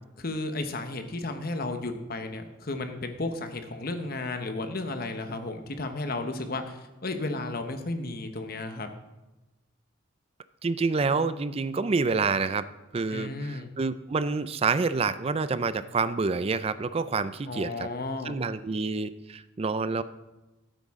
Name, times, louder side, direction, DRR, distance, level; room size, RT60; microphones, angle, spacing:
voice 1, 0.2-8.9 13.1-13.7 17.5-18.4, left 2 dB, 50° left, 7 dB, 1.0 m, -33 dB
voice 2, 10.6-12.7 12.9-17.9 18.2-20.0, right 4 dB, 30° right, 14 dB, 0.4 m, -28 dB
12.5 x 9.1 x 3.6 m, 1.1 s
head